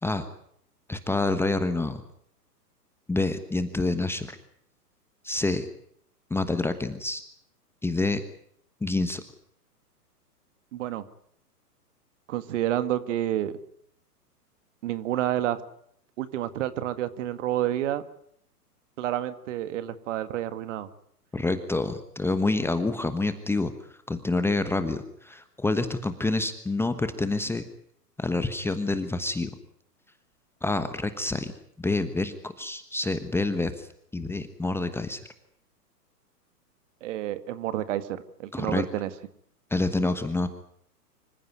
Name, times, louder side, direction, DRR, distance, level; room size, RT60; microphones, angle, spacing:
voice 1, 0.9-2.0 3.1-4.4 5.2-5.7 6.3-7.2 7.8-8.2 8.8-9.2 21.3-23.7 24.1-27.6 28.2-29.5 30.6-31.5 31.8-33.9 34.1-35.2 38.5-38.9 39.7-40.5, left 2 dB, 5° left, 10 dB, 1.2 m, -27 dB
voice 2, 10.7-11.0 12.3-13.5 14.8-15.6 16.2-18.0 19.0-20.9 37.0-39.1, right 12 dB, 50° right, 13 dB, 2.0 m, -29 dB
26.0 x 15.0 x 9.5 m, 0.67 s
hypercardioid pair, 125°, 48 cm